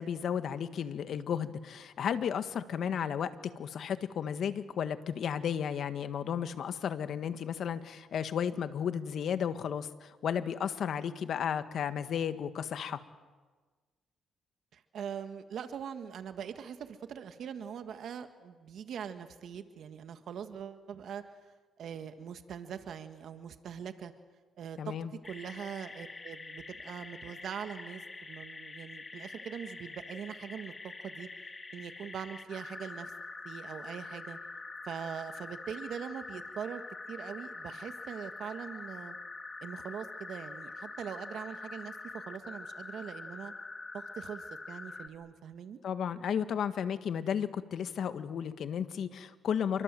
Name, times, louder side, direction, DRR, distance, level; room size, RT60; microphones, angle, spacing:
voice 1, 0.0-13.0 24.8-25.1 45.8-49.8, left 8 dB, 65° left, 10 dB, 1.6 m, -33 dB
voice 2, 14.7-21.2 21.8-24.1 24.6-25.0 25.2-31.3 31.7-33.1 33.4-34.4 34.8-36.8 37.1-39.2 39.6-43.5 43.9-45.8, right 8 dB, 65° right, 8 dB, 1.7 m, -42 dB
sound 1, 25.2-45.1, left 3 dB, 25° left, 2.0 m, -45 dB
29.0 x 24.0 x 7.7 m, 1.4 s
cardioid pair, 90°, 0 cm